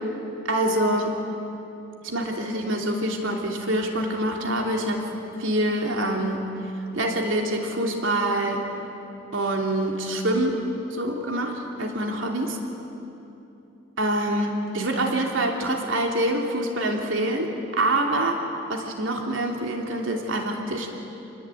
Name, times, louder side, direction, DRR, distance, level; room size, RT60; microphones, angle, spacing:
voice 1, 0.5-1.1 2.0-5.1 5.4-6.5 6.8-8.6 9.3-10.6 10.9-12.5 14.0-18.4 18.7-20.9, right 1 dB, 75° right, 1 dB, 3.0 m, -25 dB
27.5 x 21.0 x 9.1 m, 2.9 s
head